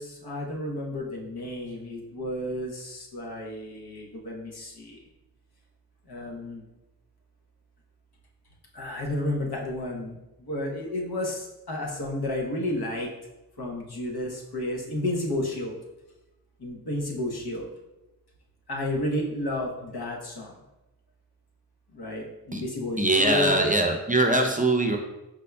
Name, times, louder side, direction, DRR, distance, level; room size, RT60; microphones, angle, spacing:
voice 1, 0.0-5.0 6.1-6.6 8.7-13.1 13.6-15.8 16.6-17.7 18.7-20.5 21.9-23.6, left 1 dB, 70° left, -1 dB, 0.9 m, -32 dB
voice 2, 23.0-25.0, right 2 dB, 20° right, 3 dB, 0.5 m, -22 dB
5.3 x 3.5 x 2.2 m, 1.0 s
cardioid pair, 45°, 40 cm